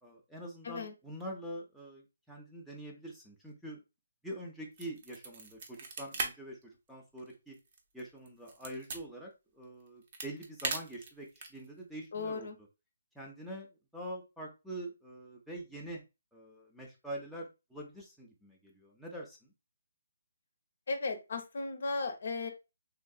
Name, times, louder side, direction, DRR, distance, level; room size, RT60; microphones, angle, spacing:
voice 1, 0.0-3.8 4.2-6.6 6.9-7.6 7.9-12.5 13.1-16.0 16.3-19.5, right 1 dB, ahead, -3 dB, 0.6 m, -45 dB
sound 1, 4.7-6.3 6.6-6.7 7.2-9.0 9.8-11.7, right 4 dB, 40° right, 0.7 m, -38 dB
voice 2, 12.1-12.6 20.9-22.5, left 3 dB, 60° left, 6 dB, 0.7 m, -36 dB
3.6 x 2.5 x 2.4 m, 0.26 s
hypercardioid pair, 155°, 0 cm